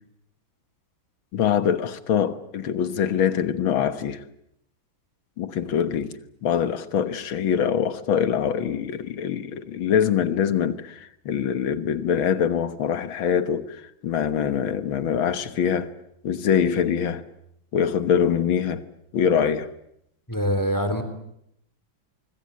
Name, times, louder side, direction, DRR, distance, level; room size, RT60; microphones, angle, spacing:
voice 1, 1.3-4.2 5.4-6.2 6.4-13.8 14.0-15.9 16.2-17.2 17.7-18.8 19.1-19.7, left 8 dB, 80° left, 2.1 m, -24 dB
voice 2, 20.3-21.0, equal, 10° left, 3.3 m, -24 dB
24.5 x 24.5 x 8.6 m
omnidirectional pair, 2.2 m